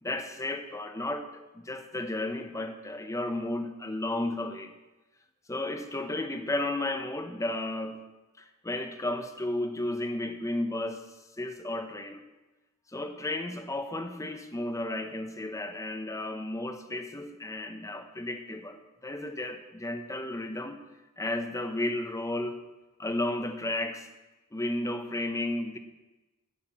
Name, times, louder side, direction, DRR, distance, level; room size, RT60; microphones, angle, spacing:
voice 1, 0.0-4.7 5.5-8.1 8.4-11.1 11.4-12.2 12.9-20.8 21.2-22.6 23.0-24.1 24.5-25.8, left 1 dB, 15° left, 7 dB, 0.9 m, -33 dB
9.7 x 6.6 x 9.0 m, 1.1 s
head